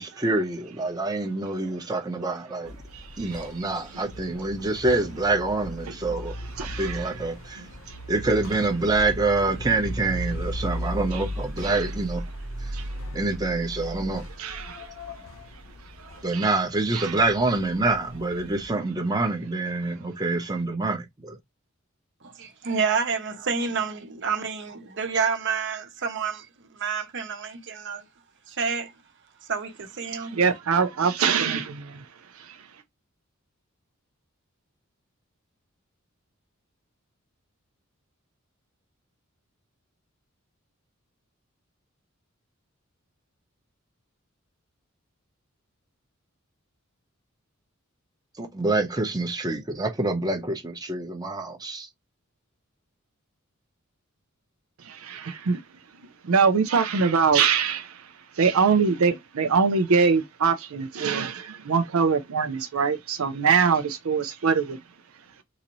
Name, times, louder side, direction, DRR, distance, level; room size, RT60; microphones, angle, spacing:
voice 1, 0.0-2.8 3.2-7.7 8.1-12.2 12.6-12.7 13.1-14.2 16.2-21.4 48.4-51.9, right 2 dB, 20° right, 0.7 m, -26 dB
sound 1, 2.6-18.7, equal, 70° left, 0.9 m, -37 dB
voice 2, 2.9-3.2 6.6-7.1 7.9-8.0 11.6-11.7 12.7-12.9 14.4-14.9 16.0-16.5 16.9-17.2 30.3-32.0 32.4-32.6 54.8-55.6 56.2-64.8, right 5 dB, 80° right, 0.5 m, -23 dB
voice 3, 22.2-26.5 26.7-28.0 28.5-28.9 29.5-30.4, right 5 dB, 60° right, 0.9 m, -29 dB
3.9 x 2.6 x 3.0 m
head